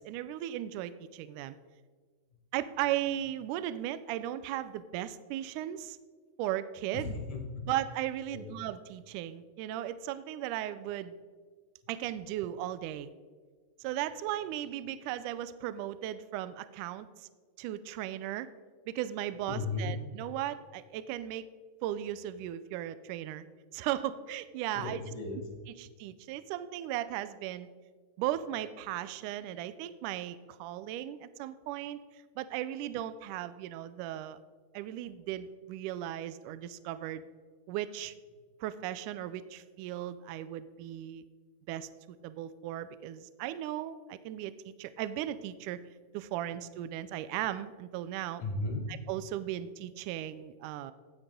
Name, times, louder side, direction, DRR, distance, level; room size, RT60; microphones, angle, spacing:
voice 1, 0.0-1.6 2.5-6.0 6.4-7.1 7.7-11.1 11.9-13.1 13.8-17.3 17.6-18.5 18.9-21.5 21.8-23.4 23.7-25.0 25.8-27.7 28.2-32.0 32.4-34.4 34.7-37.2 37.7-38.1 38.6-41.2 41.7-41.9 42.2-45.8 46.1-48.4 49.1-50.9, right 12 dB, 80° right, 14 dB, 1.9 m, -36 dB
voice 2, 6.9-7.6 8.3-8.5 19.5-20.0 24.7-25.9 48.4-48.9, left 3 dB, 60° left, 2 dB, 2.8 m, -36 dB
15.0 x 9.5 x 3.7 m, 1.5 s
omnidirectional pair, 4.0 m